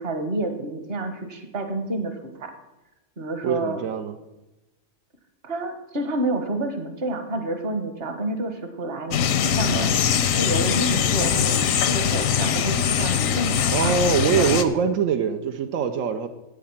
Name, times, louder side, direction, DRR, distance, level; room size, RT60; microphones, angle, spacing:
voice 1, 0.0-2.5 3.2-3.8 5.4-9.9 10.3-13.9 14.4-14.6, right 2 dB, 50° right, 7 dB, 1.5 m, -29 dB
voice 2, 3.4-4.2 13.7-16.3, right 7 dB, 85° right, 7 dB, 1.1 m, -23 dB
sound 1, 9.1-14.6, left 8 dB, 90° left, 1.2 m, -22 dB
8.6 x 8.4 x 7.3 m, 1.0 s
omnidirectional pair, 1.3 m